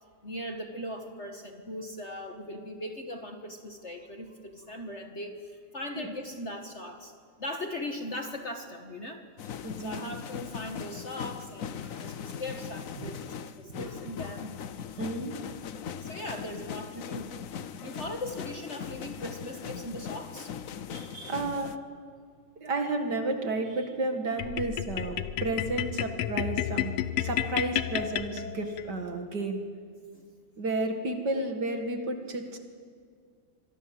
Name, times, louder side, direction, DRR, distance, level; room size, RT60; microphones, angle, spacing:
voice 1, 0.2-7.1 7.4-14.5 16.0-17.3 17.8-20.5 30.1-30.2, left 1 dB, 35° left, 4 dB, 1.6 m, -39 dB
sound 1, 9.4-21.8, left 8 dB, 65° left, 0.8 m, -40 dB
voice 2, 9.6-10.0 11.8-12.0 13.0-13.1 13.7-13.9 14.2-14.3 15.0-15.4 20.9-21.7 22.6-29.6 30.6-32.6, right 2 dB, 50° right, 5 dB, 2.4 m, -32 dB
sound 2, 24.4-28.9, left 11 dB, 85° left, 1.8 m, -31 dB
26.0 x 22.0 x 7.8 m, 2.1 s
omnidirectional pair, 2.4 m